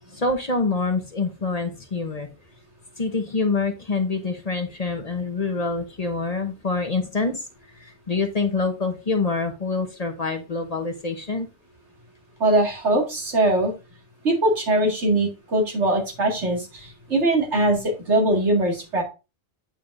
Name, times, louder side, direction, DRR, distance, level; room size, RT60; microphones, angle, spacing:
voice 1, 0.1-2.3 3.0-7.4 7.8-11.5, left 3 dB, 35° left, 5 dB, 0.9 m, -26 dB
voice 2, 12.4-13.7 14.2-19.0, right 1 dB, 80° right, 0 dB, 2.4 m, -21 dB
8.6 x 5.3 x 2.5 m, 0.28 s
omnidirectional pair, 1.2 m